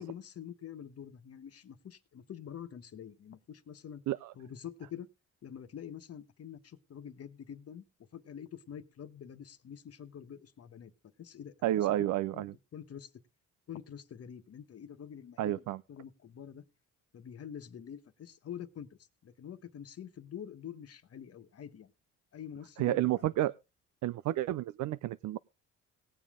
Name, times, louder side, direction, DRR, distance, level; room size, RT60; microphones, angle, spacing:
voice 1, 0.0-4.0 4.3-5.1 5.4-7.8 8.1-10.9 11.2-12.1 12.3-12.5 12.7-13.1 13.7-15.6 15.9-16.6 17.1-21.9 22.3-23.0, left 9 dB, 55° left, 1.3 m, -46 dB
voice 2, 11.6-12.5 15.4-15.8 22.8-23.5 24.0-25.4, right 14 dB, 75° right, 0.5 m, -30 dB
19.0 x 7.3 x 3.7 m
cardioid pair, 90°, 30 cm